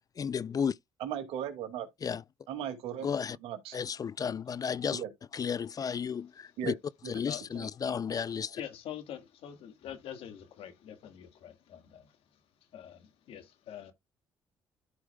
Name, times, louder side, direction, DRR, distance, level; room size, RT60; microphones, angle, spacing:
voice 1, 0.2-0.8 2.0-2.2 3.0-3.4 3.7-5.0 5.3-6.7 7.1-8.6, left 7 dB, 40° left, 0.4 m, -33 dB
voice 2, 1.0-1.9 2.5-3.1 3.4-3.8 4.9-5.1 6.6-6.7 7.0-7.1 7.6-7.7, right 9 dB, 80° right, 2.2 m, -37 dB
voice 3, 8.6-12.4 12.7-13.9, left 9 dB, 75° left, 1.8 m, -45 dB
13.0 x 4.9 x 2.3 m
supercardioid pair, 70°, 10 cm